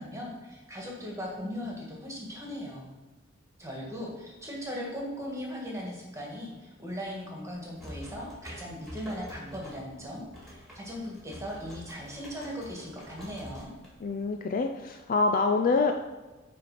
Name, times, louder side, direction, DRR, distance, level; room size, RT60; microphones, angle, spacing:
voice 1, 0.0-2.9 3.6-13.7, equal, 15° right, -2 dB, 1.6 m, -38 dB
sound 1, 7.5-14.3, equal, ahead, 2.1 m, -47 dB
voice 2, 14.0-15.9, left 4 dB, 45° left, 4 dB, 0.4 m, -26 dB
8.7 x 3.4 x 4.8 m, 1.2 s
head